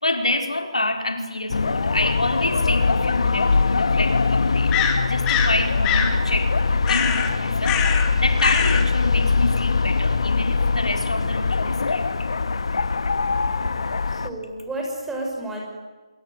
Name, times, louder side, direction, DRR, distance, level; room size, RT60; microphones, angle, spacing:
voice 1, 0.0-4.7 5.1-6.6 6.9-7.8 8.2-12.3, left 2 dB, 90° left, 5 dB, 4.7 m, -27 dB
sound 1, 1.5-14.3, left 4 dB, 65° left, 1.6 m, -22 dB
sound 2, 4.7-5.6 5.8-6.2 6.9-7.3 7.6-8.1 8.4-8.9, left 8 dB, 15° left, 2.6 m, -23 dB
voice 2, 14.1-15.6, right 1 dB, 5° right, 0 dB, 6.1 m, -31 dB
26.5 x 24.0 x 9.2 m, 1.3 s
figure-of-eight pair, 150°, 3 cm